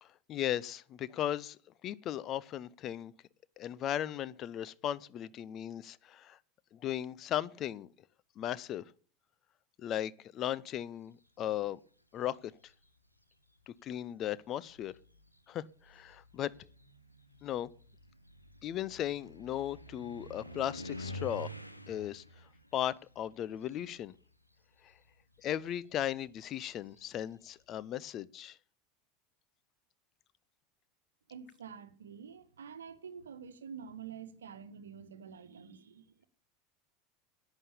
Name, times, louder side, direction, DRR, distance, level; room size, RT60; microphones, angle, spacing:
voice 1, 0.0-1.6 1.8-3.1 3.6-6.4 6.7-7.9 8.4-8.8 9.8-11.8 12.1-12.5 13.7-14.9 15.5-16.5 17.4-17.7 18.6-21.5 21.9-22.2 22.7-24.1 24.8-24.9 25.4-28.6, left 11 dB, 40° left, 0.6 m, -37 dB
sound 1, 12.3-12.9 13.9-14.0 14.5-24.5 24.7-27.4, equal, 90° left, 1.1 m, -49 dB
voice 2, 31.3-36.2, right 7 dB, 70° right, 1.2 m, -48 dB
11.0 x 9.2 x 6.9 m
figure-of-eight pair, 75°, 0 cm